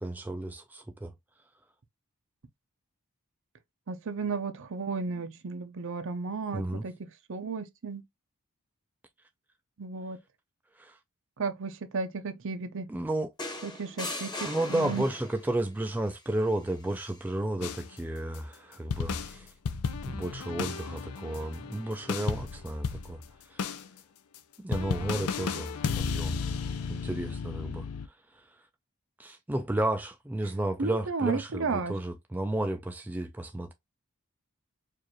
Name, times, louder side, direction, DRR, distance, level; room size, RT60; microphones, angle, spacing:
voice 1, 0.0-1.1 6.5-6.8 10.8-11.0 12.9-13.3 14.4-19.5 20.0-23.8 24.6-26.4 26.9-27.9 28.3-28.6 29.2-33.7, right 1 dB, 10° right, 0.3 m, -33 dB
voice 2, 3.9-6.9 7.3-8.0 9.8-10.2 11.4-12.9 13.6-15.0 30.8-31.9, right 4 dB, 60° right, 0.7 m, -33 dB
sound 1, 13.4-15.5 16.9-17.2, left 2 dB, 20° left, 1.0 m, -38 dB
sound 2, 17.6-17.9 18.3-18.4 18.9-23.3 23.6-23.9 24.3-24.4 24.7-28.1, left 5 dB, 80° left, 0.5 m, -34 dB
4.6 x 2.5 x 2.9 m
head